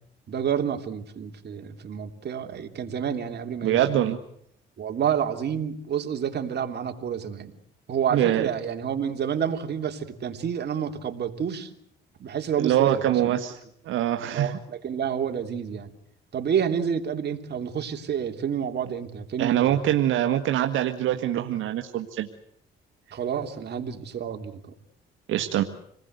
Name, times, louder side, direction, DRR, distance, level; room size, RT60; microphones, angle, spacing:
voice 1, 0.3-3.9 4.8-7.5 7.9-11.7 12.2-13.3 14.3-15.9 16.3-19.8 23.1-24.7, right 8 dB, 60° right, 5 dB, 3.2 m, -29 dB
voice 2, 3.6-4.2 8.1-8.5 12.6-13.6 13.9-14.5 19.4-22.3 25.3-25.6, right 12 dB, 85° right, 5 dB, 1.7 m, -24 dB
27.5 x 19.5 x 8.1 m, 0.71 s
cardioid pair, 90°, 20 cm